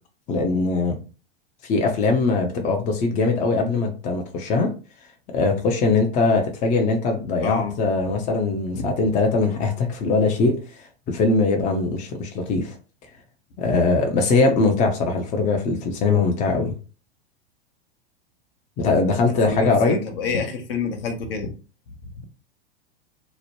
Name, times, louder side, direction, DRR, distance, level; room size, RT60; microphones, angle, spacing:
voice 1, 0.3-1.0 1.6-4.7 5.3-12.7 13.6-16.7 18.8-20.0, left 3 dB, 25° left, 0.5 m, -21 dB
voice 2, 7.4-7.7 8.0-8.1 8.7-8.8 19.4-21.5 22.2-22.3, left 4 dB, 60° left, 0.8 m, -28 dB
2.9 x 2.1 x 2.8 m
figure-of-eight pair, 95°, 32 cm